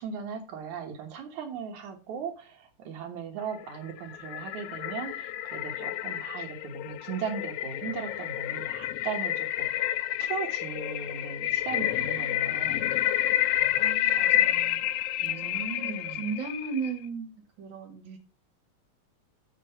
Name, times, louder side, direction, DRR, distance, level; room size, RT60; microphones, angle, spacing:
voice 1, 0.0-12.9 15.2-16.3, right 6 dB, 85° right, 3 dB, 2.8 m, -38 dB
sound 1, 3.6-17.0, left 12 dB, 85° left, 1.4 m, -29 dB
voice 2, 13.8-14.8 15.3-18.2, right 5 dB, 40° right, 5 dB, 2.5 m, -37 dB
7.7 x 6.1 x 5.5 m, 0.34 s
omnidirectional pair, 3.3 m